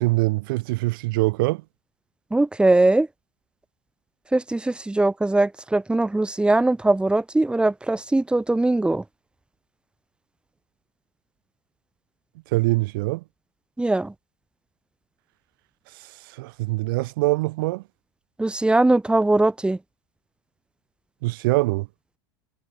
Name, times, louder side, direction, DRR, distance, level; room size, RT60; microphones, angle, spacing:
voice 1, 0.0-1.6 12.5-13.2 15.9-17.8 21.2-21.9, right 22 dB, 60° right, 4.6 m, -23 dB
voice 2, 2.3-3.1 4.3-9.0 13.8-14.1 18.4-19.8, right 2 dB, 5° right, 3.5 m, -21 dB
figure-of-eight pair, 85°, 13 cm